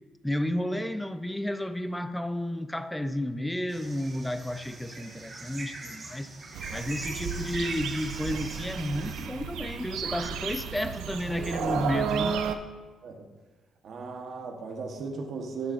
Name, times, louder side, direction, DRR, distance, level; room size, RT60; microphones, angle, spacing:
voice 1, 0.2-6.3 6.7-12.4, left 1 dB, 5° left, 11 dB, 0.4 m, -32 dB
sound 1, 3.7-9.3, right 2 dB, 40° right, 1.4 m, -42 dB
sound 2, 4.4-5.1 5.6-6.3 7.0-7.5 8.1-9.9 10.4-11.1, left 5 dB, 70° left, 2.2 m, -51 dB
sound 3, 6.5-12.5, right 7 dB, 85° right, 0.4 m, -33 dB
voice 2, 13.8-15.7, right 4 dB, 65° right, 3 dB, 1.1 m, -36 dB
12.0 x 5.6 x 2.5 m, 1.3 s
cardioid pair, 90°, 0 cm